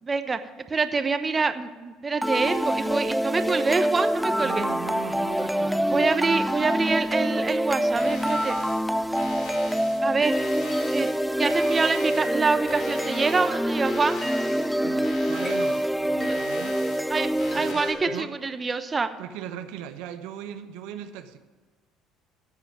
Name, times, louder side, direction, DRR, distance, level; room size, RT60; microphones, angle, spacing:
voice 1, 0.0-0.4 0.7-4.7 5.9-8.6 10.0-10.3 10.9-11.1 11.4-14.2 16.3-16.4 17.1-19.1, right 4 dB, 30° right, 10 dB, 0.9 m, -26 dB
sound 1, 2.2-18.2, equal, ahead, 0.3 m, -26 dB
voice 2, 4.4-6.1 14.8-16.7 17.5-18.4 19.2-21.4, right 9 dB, 80° right, 8 dB, 0.8 m, -39 dB
sound 2, 7.9-17.9, left 3 dB, 65° left, 3.9 m, -42 dB
14.5 x 5.0 x 9.3 m, 1.4 s
supercardioid pair, 70°, 0 cm